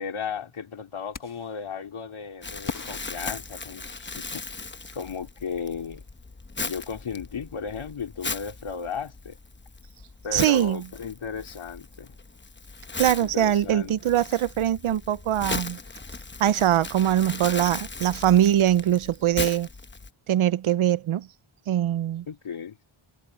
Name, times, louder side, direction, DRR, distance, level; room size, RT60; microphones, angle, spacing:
voice 1, 0.0-6.0 6.6-9.4 10.2-12.1 13.2-14.0 22.3-22.8, left 6 dB, 75° left, 3.3 m, -35 dB
sound 1, 1.1-1.6 2.7-4.2, left 5 dB, 40° left, 1.2 m, -39 dB
Crumpling crinkling, 2.4-20.1, left 3 dB, 20° left, 1.0 m, -38 dB
voice 2, 10.3-10.8 13.0-15.8 16.4-19.7 20.3-21.3 21.7-22.3, right 11 dB, 75° right, 0.6 m, -22 dB
wide cardioid pair, 105°, 50 cm